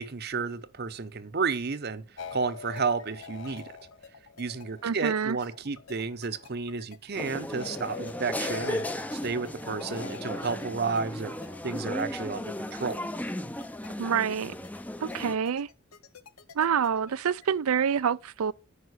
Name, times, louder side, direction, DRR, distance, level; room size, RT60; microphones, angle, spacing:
voice 1, 0.0-3.7 4.4-11.3 11.6-13.0, right 4 dB, 50° right, 0.8 m, -32 dB
sound 1, 2.2-5.4 5.7-6.5 7.5-10.8 11.3-12.0, left 5 dB, 60° left, 0.8 m, -44 dB
sound 2, 2.8-17.5, left 5 dB, 85° left, 1.0 m, -52 dB
voice 2, 4.8-5.4 14.0-14.6 15.0-15.7 16.5-18.5, right 7 dB, 90° right, 0.5 m, -27 dB
sound 3, 7.2-15.4, left 1 dB, 5° left, 0.5 m, -36 dB
9.6 x 5.2 x 8.0 m
head